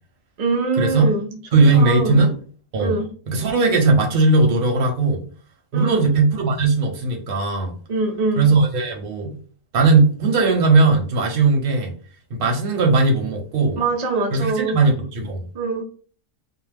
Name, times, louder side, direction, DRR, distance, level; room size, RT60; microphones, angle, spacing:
voice 1, 0.4-1.3 1.7-2.2 2.8-3.1 5.7-6.0 7.9-8.5 13.8-14.9 15.5-15.8, right 3 dB, 80° right, 0.3 m, -23 dB
voice 2, 1.5-2.3 2.7-2.9 3.3-5.2 5.7-7.7 8.4-9.4 9.7-11.9 12.3-13.8 14.3-15.4, right 3 dB, 50° right, 0.7 m, -18 dB
2.5 x 2.0 x 3.2 m
omnidirectional pair, 1.5 m